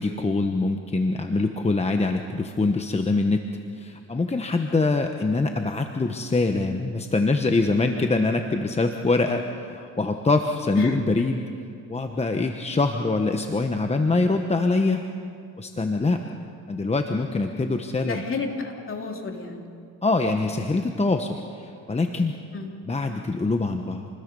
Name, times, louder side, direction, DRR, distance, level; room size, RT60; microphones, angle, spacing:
voice 1, 0.0-3.4 3.8-11.4 11.9-15.0 15.6-16.2 16.7-18.2 20.0-22.3 22.8-24.1, left 3 dB, 20° left, 5 dB, 1.1 m, -24 dB
voice 2, 18.1-19.7 22.5-22.7, left 4 dB, 45° left, 2 dB, 3.1 m, -31 dB
28.0 x 20.5 x 5.4 m, 2.5 s
cardioid pair, 90°, 30 cm